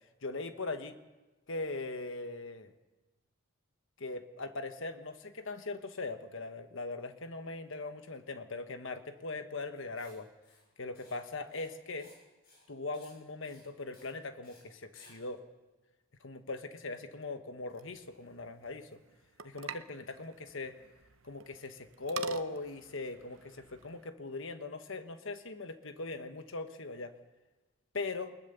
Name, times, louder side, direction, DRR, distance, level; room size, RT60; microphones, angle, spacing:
voice 1, 0.2-0.9 1.5-2.7 4.0-10.3 10.8-12.1 12.7-15.4 16.2-19.0 19.4-20.7 21.2-27.1 27.9-28.3, left 3 dB, 70° left, 8 dB, 1.4 m, -40 dB
Writing, 9.9-10.2 10.4-10.6 10.9-11.2 11.4-12.2 12.4-12.7 12.9-13.2 13.4-13.6 13.9-14.1 14.4-14.6 14.9-15.1, left 2 dB, 50° left, 7.0 m, -60 dB
sound 1, 17.7-24.1, right 7 dB, 80° right, 0.9 m, -48 dB
21.0 x 19.5 x 6.9 m, 1.2 s
head